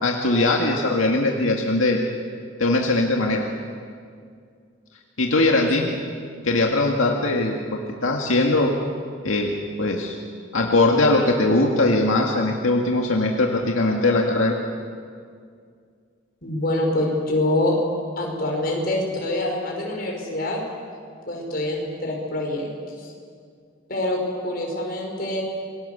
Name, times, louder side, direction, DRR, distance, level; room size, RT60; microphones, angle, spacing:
voice 1, 0.0-2.0 2.6-3.4 5.2-5.9 6.4-7.5 8.0-8.7 9.2-9.5 9.8-10.2 10.5-14.6, left 2 dB, 80° left, 0 dB, 2.0 m, -20 dB
voice 2, 16.4-17.8 18.2-20.6 21.3-22.7 22.9-23.1 23.9-25.4, left 1 dB, 45° left, 0 dB, 5.6 m, -25 dB
28.0 x 21.0 x 7.0 m, 2.2 s
head